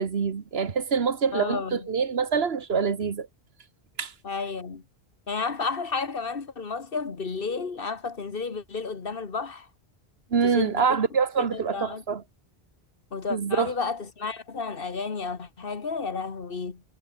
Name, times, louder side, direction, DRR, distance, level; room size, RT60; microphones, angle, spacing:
voice 1, 0.0-3.3 4.0-4.1 10.3-12.2 13.3-13.7, right 6 dB, 70° right, 1.5 m, -25 dB
voice 2, 1.3-1.9 4.2-4.8 5.3-9.7 10.4-10.9 11.4-12.0 13.1-16.8, left 4 dB, 60° left, 1.7 m, -32 dB
omnidirectional pair, 1.1 m